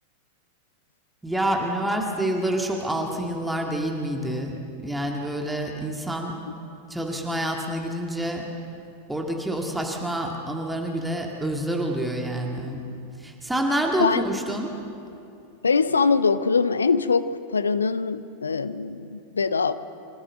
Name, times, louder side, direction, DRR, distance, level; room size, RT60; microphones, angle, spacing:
voice 1, 1.2-4.6 4.8-6.3 6.9-8.5 9.1-12.8 13.2-14.7, right 1 dB, 5° right, 1 dB, 1.9 m, -27 dB
voice 2, 15.6-19.7, left 5 dB, 75° left, 14 dB, 0.7 m, -23 dB
25.0 x 14.0 x 7.7 m, 2.6 s
figure-of-eight pair, 90°, 0 cm